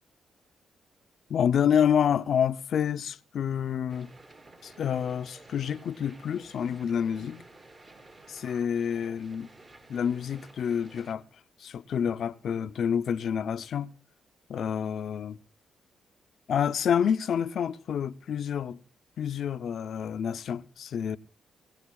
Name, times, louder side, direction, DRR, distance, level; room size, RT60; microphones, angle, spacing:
voice 1, 1.3-4.2 4.6-7.4 8.4-9.5 9.9-11.2 11.6-13.9 14.5-15.4 16.5-18.8 19.2-21.2, left 8 dB, 65° left, 0.5 m, -28 dB
sound 1, 3.9-11.1, right 2 dB, 40° right, 3.0 m, -53 dB
23.5 x 16.5 x 2.3 m
cardioid pair, 90°, 0 cm